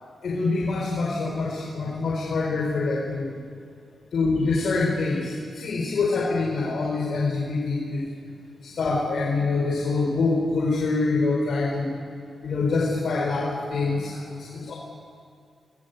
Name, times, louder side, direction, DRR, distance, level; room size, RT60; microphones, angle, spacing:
voice 1, 0.2-3.4 4.1-8.0 8.6-11.9 12.4-14.7, left 3 dB, 70° left, -3 dB, 4.3 m, -25 dB
24.0 x 18.5 x 8.3 m, 2.4 s
cardioid pair, 75°, 0 cm